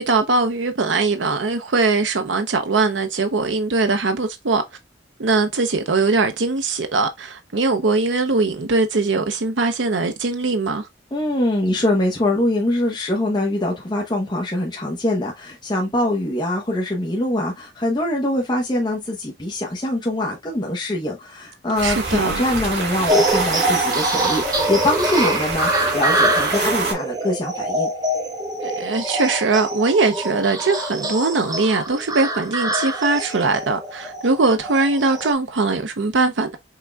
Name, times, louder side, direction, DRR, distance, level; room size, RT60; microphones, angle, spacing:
voice 1, 0.0-4.6 5.2-10.9 21.8-22.4 28.6-36.6, right 3 dB, 85° right, 0.7 m, -21 dB
voice 2, 11.1-27.9, left 1 dB, 25° left, 0.9 m, -23 dB
sound 1, 21.7-26.9, right 4 dB, 65° right, 2.3 m, -26 dB
sound 2, 23.1-35.3, right 1 dB, 20° right, 1.4 m, -24 dB
5.8 x 3.7 x 2.3 m
head